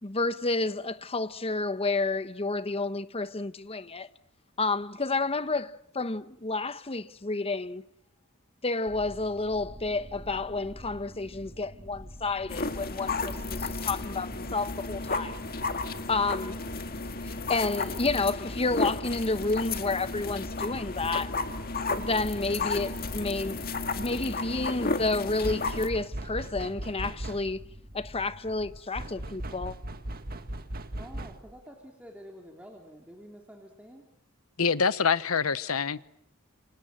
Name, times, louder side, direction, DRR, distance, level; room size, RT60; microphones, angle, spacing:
voice 1, 0.0-4.1 4.6-7.8 8.6-15.4 16.1-16.6 17.2-21.3 21.9-23.6 24.0-27.6 27.9-29.8, left 3 dB, 30° left, 1.0 m, -30 dB
sound 1, 8.9-28.8, equal, 30° right, 3.1 m, -48 dB
sound 2, 12.5-25.9, left 3 dB, 45° left, 1.9 m, -33 dB
sound 3, 25.4-27.7 28.9-31.6, right 1 dB, 45° right, 1.9 m, -38 dB
voice 2, 31.0-34.0, equal, 5° right, 3.4 m, -48 dB
voice 3, 34.6-36.1, left 5 dB, 80° left, 1.1 m, -25 dB
29.0 x 26.0 x 7.7 m
head